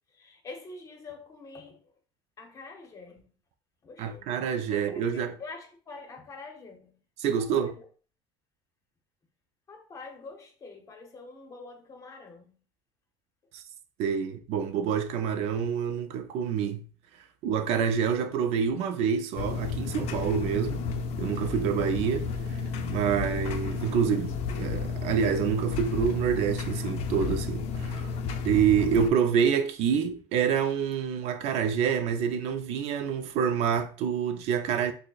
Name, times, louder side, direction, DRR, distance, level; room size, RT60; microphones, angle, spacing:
voice 1, 0.1-2.0 2.4-3.3 3.8-4.3 4.7-7.0 7.5-7.9 9.7-12.6, left 3 dB, 30° left, 0.8 m, -46 dB
voice 2, 4.0-5.4 7.2-7.7 13.5-13.6 14.0-16.8 17.4-20.8 21.2-28.1 28.4-34.9, right 7 dB, 60° right, 0.4 m, -27 dB
sound 1, 19.4-29.1, left 5 dB, 60° left, 0.5 m, -32 dB
6.2 x 2.1 x 2.3 m
cardioid pair, 130°, 12 cm